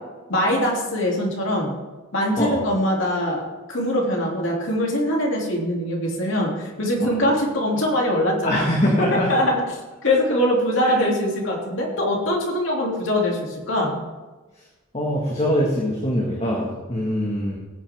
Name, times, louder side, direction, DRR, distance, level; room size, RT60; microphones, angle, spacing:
voice 1, 0.3-1.7 2.1-8.6 9.3-9.6 10.0-14.0, left 1 dB, 70° left, -2 dB, 3.0 m, -22 dB
voice 2, 8.4-9.5 10.8-11.0 14.9-17.6, equal, 35° left, -2 dB, 1.9 m, -23 dB
18.0 x 8.8 x 3.7 m, 1.2 s
head